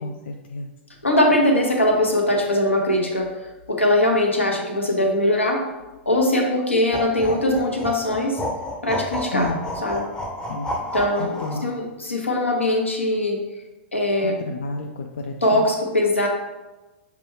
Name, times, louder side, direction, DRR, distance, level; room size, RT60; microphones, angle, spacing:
voice 1, 0.0-0.7 9.3-9.7 10.5-10.7 11.2-11.7 14.2-15.7, left 2 dB, 60° left, 3 dB, 0.3 m, -30 dB
voice 2, 1.0-3.3 3.7-5.6 6.1-8.4 8.8-9.5 9.8-10.1 10.9-13.4 13.9-14.4 15.4-16.3, left 1 dB, 85° left, 1 dB, 0.8 m, -21 dB
sound 1, 6.9-11.7, left 1 dB, 15° left, 0.6 m, -31 dB
5.8 x 2.2 x 3.2 m, 1.1 s
figure-of-eight pair, 100°, 6 cm